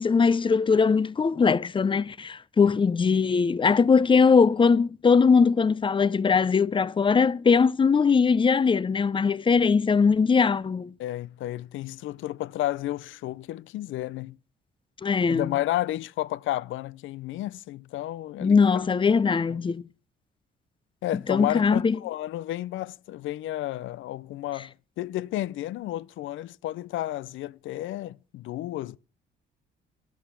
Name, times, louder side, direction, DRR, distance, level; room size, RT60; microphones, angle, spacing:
voice 1, 0.0-10.9 15.0-15.5 18.4-19.8 21.3-22.0, left 5 dB, 25° left, 0.6 m, -21 dB
voice 2, 11.0-14.4 15.3-18.6 19.5-19.6 21.0-29.0, left 14 dB, 80° left, 0.5 m, -32 dB
11.0 x 10.5 x 5.8 m
cardioid pair, 90°, 20 cm